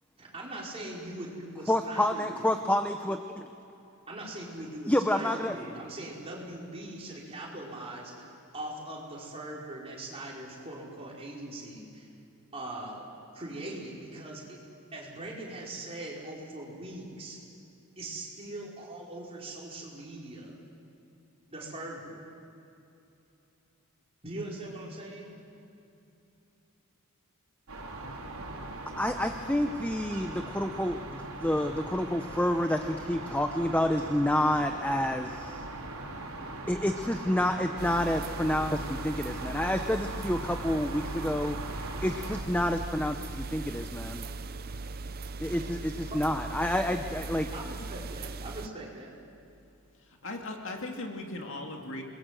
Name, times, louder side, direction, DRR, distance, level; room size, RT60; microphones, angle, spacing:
voice 1, 0.2-2.5 4.1-12.1 12.5-13.0 13.3-14.6 14.9-17.4 18.0-20.6 21.5-22.2 24.2-25.4 47.5-49.1, right 1 dB, 25° right, -4 dB, 5.2 m, -41 dB
voice 2, 1.7-3.5 4.9-5.6 29.0-35.6 36.7-41.6 42.0-44.3 45.4-47.5, left 1 dB, 5° left, 6 dB, 0.7 m, -29 dB
sound 1, 27.7-42.4, right 2 dB, 75° right, 3.9 m, -40 dB
sound 2, 37.8-48.7, right 3 dB, 45° right, 0.6 m, -39 dB
voice 3, 50.2-52.0, left 2 dB, 60° left, 2 dB, 2.5 m, -38 dB
28.0 x 21.5 x 7.7 m, 2.8 s
head